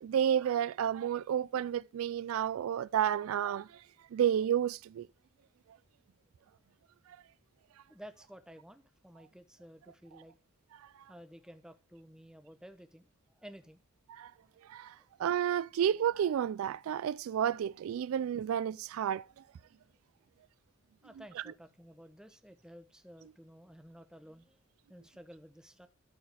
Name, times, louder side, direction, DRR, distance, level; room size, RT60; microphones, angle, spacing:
voice 1, 0.0-3.8 4.1-5.1 14.1-14.3 14.7-19.3, right 9 dB, 90° right, 0.3 m, -31 dB
voice 2, 7.9-10.3 11.1-13.1 13.3-13.8 21.0-24.6 24.9-25.9, equal, 5° right, 0.8 m, -53 dB
13.5 x 4.8 x 3.4 m
head